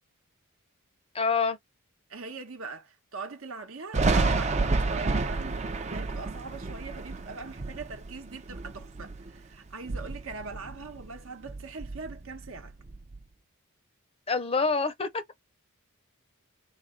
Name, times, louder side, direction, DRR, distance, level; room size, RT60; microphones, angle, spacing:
voice 1, 1.1-1.6 14.3-15.2, left 4 dB, 25° left, 0.6 m, -26 dB
voice 2, 2.1-12.7, right 4 dB, 65° right, 1.0 m, -42 dB
Thunder, 3.9-9.4 9.7-11.2 11.5-13.2, right 3 dB, 30° right, 0.6 m, -30 dB
3.9 x 2.3 x 3.7 m
head